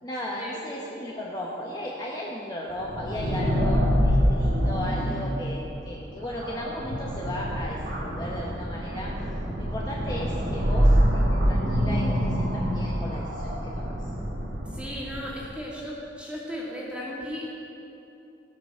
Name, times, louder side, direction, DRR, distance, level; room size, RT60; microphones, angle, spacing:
voice 1, 0.0-9.1 9.6-14.0, left 1 dB, 20° left, -4 dB, 1.0 m, -35 dB
sound 1, 2.8-15.4, equal, 55° right, 1.7 m, -26 dB
voice 2, 14.6-17.5, equal, 5° right, -6 dB, 2.4 m, -36 dB
17.5 x 6.2 x 6.4 m, 2.9 s
head